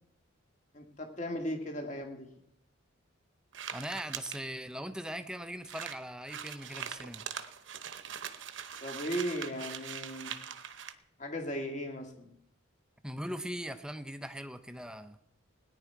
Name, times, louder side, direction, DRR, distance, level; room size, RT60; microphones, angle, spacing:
voice 1, 0.7-2.3 8.8-10.4 11.2-12.3, equal, 35° left, 3 dB, 1.8 m, -37 dB
sound 1, 3.5-4.4 5.1-5.2 5.4-5.5 5.6-10.9, right 8 dB, 60° right, 0.8 m, -42 dB
voice 2, 3.7-7.3 13.0-15.2, equal, 5° right, 10 dB, 0.5 m, -40 dB
17.5 x 10.0 x 4.6 m, 0.75 s
head